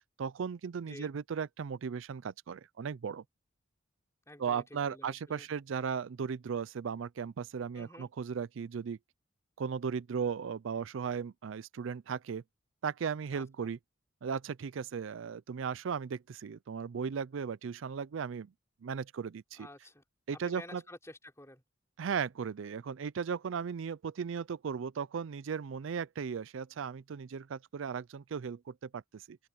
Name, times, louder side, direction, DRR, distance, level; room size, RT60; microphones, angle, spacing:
voice 1, 0.2-3.2 4.4-9.0 9.6-12.4 12.8-13.8 14.2-18.5 18.8-19.7 20.3-20.8 22.0-29.4, right 6 dB, 75° right, 0.4 m, -36 dB
voice 2, 4.3-5.5 7.7-8.1 13.3-13.7 19.6-20.0 20.3-21.6, left 1 dB, 15° left, 5.5 m, -51 dB
open air
head